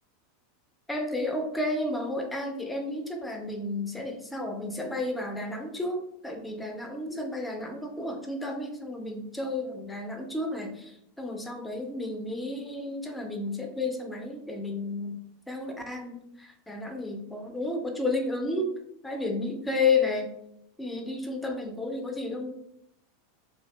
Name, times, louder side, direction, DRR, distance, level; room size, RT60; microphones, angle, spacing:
voice 1, 0.9-15.2 15.5-18.7 19.0-20.3 20.8-22.5, left 2 dB, 5° left, 4 dB, 0.3 m, -32 dB
2.6 x 2.2 x 2.2 m, 0.76 s
figure-of-eight pair, 85°, 0 cm